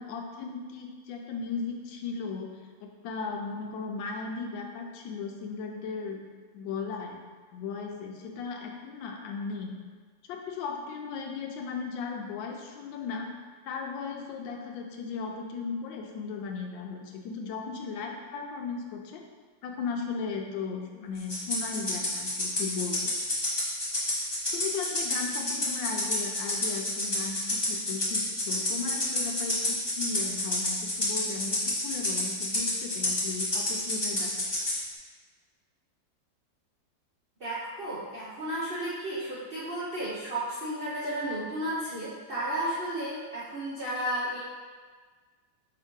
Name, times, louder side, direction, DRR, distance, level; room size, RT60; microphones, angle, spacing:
voice 1, 0.0-6.2 6.5-9.8 10.3-13.3 13.6-19.2 19.6-23.1 24.5-34.5, left 5 dB, 90° left, 2 dB, 1.4 m, -36 dB
Rattle (instrument), 21.3-34.8, left 1 dB, 30° left, 0.4 m, -29 dB
voice 2, 37.4-44.4, right 1 dB, 70° right, -8 dB, 0.5 m, -33 dB
5.2 x 2.8 x 3.6 m, 1.5 s
omnidirectional pair, 2.0 m